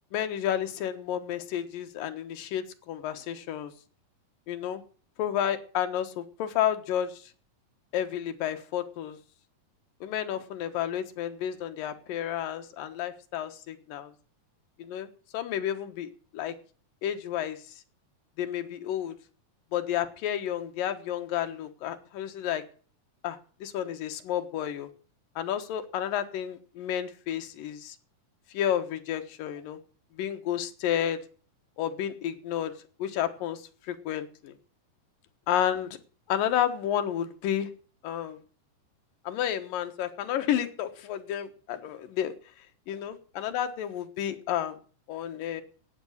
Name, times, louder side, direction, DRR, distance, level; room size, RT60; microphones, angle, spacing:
voice 1, 0.1-3.7 4.5-4.8 5.2-7.1 7.9-9.2 10.0-14.1 14.8-15.1 15.3-16.5 17.0-17.6 18.4-19.2 19.7-22.6 23.2-24.9 25.4-28.0 28.5-29.8 30.2-31.2 31.8-32.7 33.0-33.6 33.9-34.5 35.5-36.0 36.3-37.7 38.0-38.4 39.3-42.3 42.9-44.8 45.1-45.6, left 10 dB, 75° left, 8 dB, 3.0 m, -31 dB
14.5 x 9.3 x 6.5 m, 0.41 s
omnidirectional pair, 4.0 m